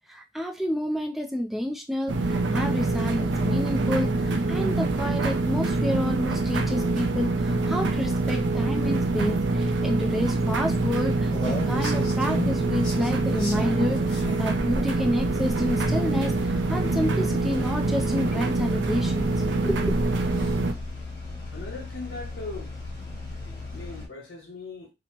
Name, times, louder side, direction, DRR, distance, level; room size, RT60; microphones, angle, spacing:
voice 1, 0.1-19.3 19.6-19.9, equal, ahead, 0.3 m, -29 dB
sound 1, 2.1-20.7, right 2 dB, 80° right, 0.4 m, -25 dB
sound 2, 10.9-24.1, left 1 dB, 25° left, 1.4 m, -35 dB
voice 2, 20.3-20.9 21.5-22.7 23.3-24.9, left 3 dB, 70° left, 0.8 m, -40 dB
2.9 x 2.0 x 2.9 m
head